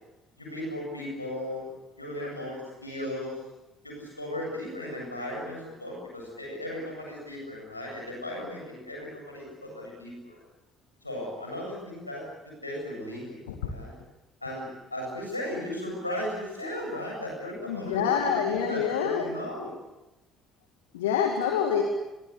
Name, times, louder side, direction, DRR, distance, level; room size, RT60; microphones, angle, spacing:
voice 1, 0.4-1.7 2.0-3.4 3.8-10.4 11.0-14.0 14.4-19.7, left 1 dB, 90° left, -1 dB, 7.9 m, -36 dB
voice 2, 17.7-19.3 20.9-21.8, left 7 dB, 75° left, 4 dB, 2.4 m, -26 dB
28.5 x 23.5 x 8.2 m, 1.0 s
figure-of-eight pair, 50°, 0 cm